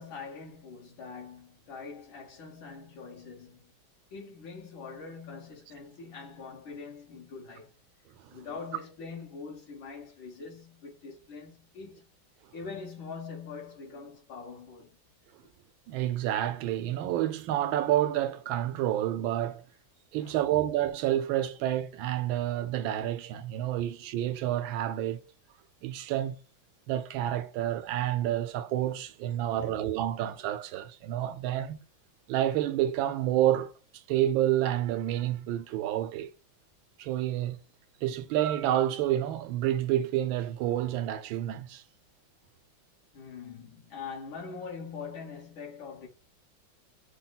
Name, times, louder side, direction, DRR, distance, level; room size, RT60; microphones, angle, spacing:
voice 1, 0.0-3.7 4.1-7.7 8.3-12.0 12.5-15.0 20.2-20.4 23.6-23.9 29.2-29.8 43.1-46.1, left 5 dB, 90° left, 2.4 m, -43 dB
voice 2, 15.9-19.6 20.1-25.2 25.8-26.4 26.9-31.8 32.3-33.7 34.1-36.3 37.0-37.6 38.0-41.8, right 12 dB, 85° right, 1.4 m, -29 dB
5.7 x 2.1 x 3.9 m
omnidirectional pair, 2.1 m